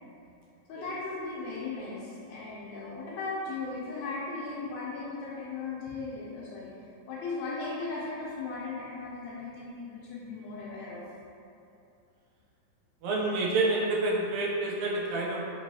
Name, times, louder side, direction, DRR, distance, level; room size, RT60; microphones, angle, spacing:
voice 1, 0.7-6.7 7.1-11.0, left 3 dB, 80° left, -7 dB, 1.7 m, -37 dB
voice 2, 13.0-15.4, right 2 dB, 85° right, -3 dB, 1.9 m, -28 dB
5.4 x 3.0 x 2.7 m, 2.7 s
omnidirectional pair, 3.4 m